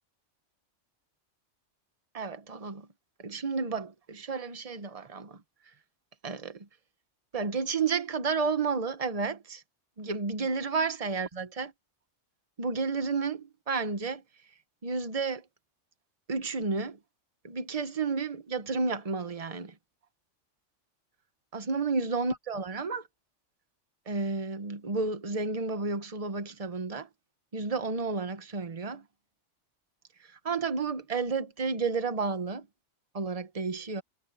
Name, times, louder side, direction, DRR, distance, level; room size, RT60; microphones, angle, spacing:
voice 1, 2.1-2.9 3.2-5.4 6.2-6.7 7.3-9.6 10.0-11.7 12.6-14.2 14.8-15.4 16.3-17.0 17.4-19.7 21.5-23.1 24.1-27.1 27.5-29.0 30.4-32.7 33.1-34.0, right 4 dB, 30° right, 1.2 m, -31 dB
omnidirectional pair, 1.3 m